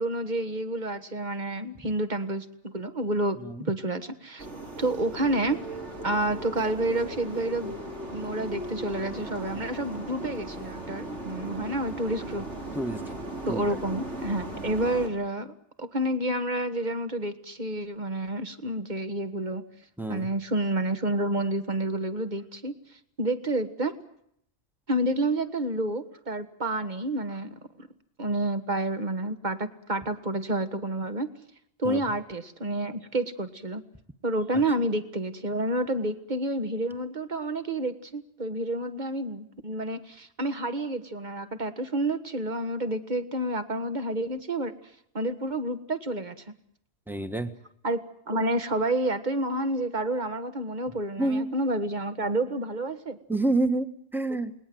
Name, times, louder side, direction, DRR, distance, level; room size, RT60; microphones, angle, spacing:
voice 1, 0.0-3.4 3.6-4.5 4.8-5.6 6.0-7.8 8.0-12.4 13.5-15.5 15.8-19.6 20.1-22.7 23.2-24.0 24.9-27.9 28.2-31.3 31.8-33.8 34.2-44.7 45.1-46.4 47.8-53.2, right 1 dB, 40° right, 9 dB, 1.8 m, -29 dB
sound 1, 4.4-15.1, right 1 dB, 85° right, 5.0 m, -37 dB
voice 2, 20.0-20.3 31.8-32.0 47.1-47.5 51.2-51.5 53.3-54.5, right 2 dB, ahead, 9 dB, 1.4 m, -28 dB
28.5 x 20.5 x 7.9 m, 0.72 s
omnidirectional pair, 1.2 m